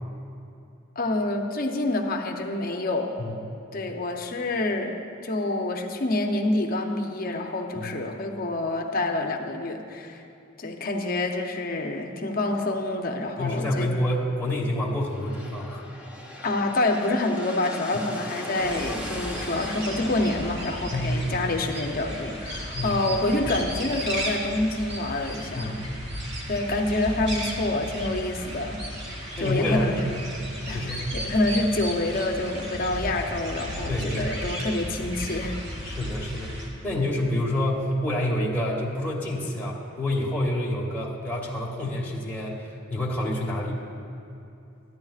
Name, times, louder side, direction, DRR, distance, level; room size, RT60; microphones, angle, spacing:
voice 1, 1.0-3.1 3.7-5.0 5.2-10.2 10.6-13.9 16.4-25.8 26.5-28.8 29.4-30.0 30.7-35.6, left 2 dB, 45° left, 3 dB, 0.7 m, -27 dB
voice 2, 13.4-15.8 20.9-21.4 22.7-23.0 25.5-26.0 29.4-30.2 30.7-31.0 33.9-34.3 35.8-36.5 36.8-43.8, left 1 dB, 10° left, -5 dB, 1.2 m, -28 dB
sound 1, 14.9-22.6, equal, 5° right, 0.7 m, -39 dB
sound 2, 18.6-36.7, equal, 55° right, 1.6 m, -35 dB
13.5 x 10.5 x 2.4 m, 2.6 s
head